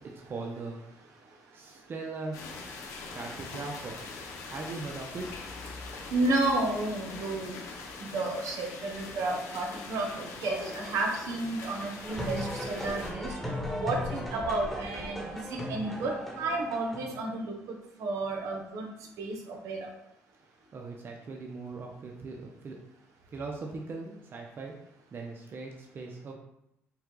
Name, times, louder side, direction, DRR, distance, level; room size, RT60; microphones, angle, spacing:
voice 1, 0.3-0.8 1.5-2.4 3.1-4.0 4.5-5.3 20.7-22.8 23.3-24.7 25.1-26.3, right 3 dB, 45° right, 0 dB, 0.7 m, -39 dB
sound 1, 2.3-13.1, left 3 dB, 85° left, 0.7 m, -42 dB
voice 2, 6.1-7.6 8.0-13.3 13.7-18.9 19.2-19.9, right 2 dB, 75° right, 1 dB, 1.0 m, -32 dB
sound 2, 12.0-17.2, equal, 5° left, 1.2 m, -36 dB
5.7 x 2.3 x 3.8 m, 0.81 s
cardioid pair, 95°, 5 cm